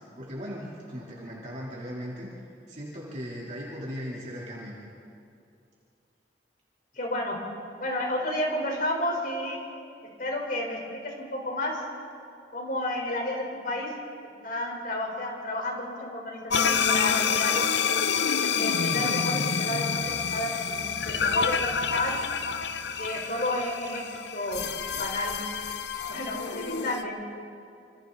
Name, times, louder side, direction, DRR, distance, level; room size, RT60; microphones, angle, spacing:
voice 1, 0.2-2.3 2.7-4.8, equal, 40° right, -6 dB, 3.6 m, -38 dB
voice 2, 6.9-7.4 7.8-9.7 10.2-11.8 12.5-13.9 14.4-17.9 18.6-22.2 23.0-24.6 25.0-25.3 26.1-27.1, left 1 dB, 50° left, 0 dB, 4.5 m, -31 dB
sound 1, 16.5-27.0, left 6 dB, 75° left, 0.8 m, -28 dB
27.5 x 26.5 x 4.1 m, 2.5 s
head